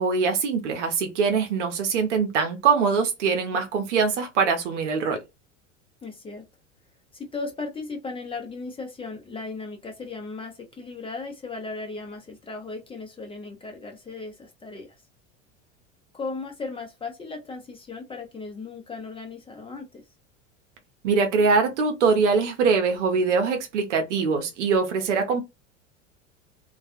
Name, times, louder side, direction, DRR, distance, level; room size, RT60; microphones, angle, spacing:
voice 1, 0.0-5.2 21.0-25.4, right 5 dB, 70° right, 0.8 m, -23 dB
voice 2, 6.0-6.4 7.1-15.0 16.1-20.0, left 3 dB, 15° left, 0.7 m, -36 dB
2.3 x 2.3 x 2.5 m
figure-of-eight pair, 80°, 38 cm